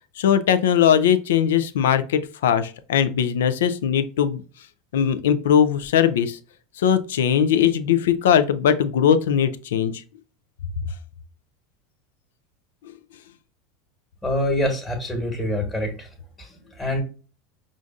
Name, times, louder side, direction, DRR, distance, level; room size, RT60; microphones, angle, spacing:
voice 1, 0.2-4.4 4.9-6.4 6.8-10.0, left 8 dB, 80° left, 12 dB, 0.4 m, -20 dB
voice 2, 14.2-16.1 16.4-16.5 16.7-17.0, left 1 dB, 10° left, 1 dB, 1.3 m, -25 dB
5.0 x 2.5 x 2.4 m, 0.37 s
hypercardioid pair, 90°, 0 cm